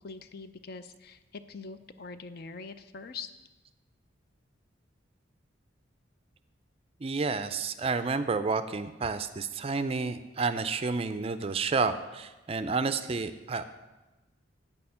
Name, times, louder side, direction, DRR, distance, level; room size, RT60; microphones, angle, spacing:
voice 1, 0.0-3.3, left 4 dB, 50° left, 11 dB, 0.5 m, -43 dB
voice 2, 7.0-13.6, right 4 dB, 30° right, 11 dB, 0.4 m, -30 dB
8.8 x 6.5 x 5.6 m, 1.1 s
head